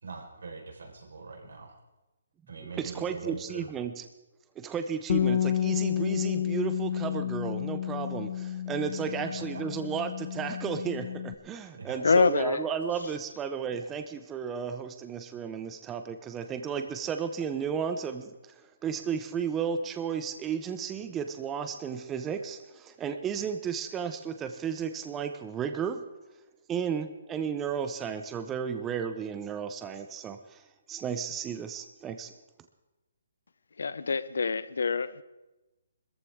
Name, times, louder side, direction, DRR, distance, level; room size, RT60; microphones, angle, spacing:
voice 1, 0.0-1.7 2.5-3.7 9.2-9.3 9.5-9.6 11.7-12.0, right 4 dB, 85° right, 0 dB, 4.3 m, -42 dB
voice 2, 2.7-4.0 4.6-18.5 18.8-26.0 26.7-30.6 30.9-32.3, right 7 dB, 10° right, 8 dB, 0.5 m, -33 dB
Bass guitar, 5.1-11.3, left 9 dB, 50° left, 0.9 m, -30 dB
voice 3, 12.0-12.7 33.8-35.2, left 4 dB, 80° left, 16 dB, 0.7 m, -25 dB
21.0 x 14.0 x 3.6 m, 1.1 s
hypercardioid pair, 165°, 0 cm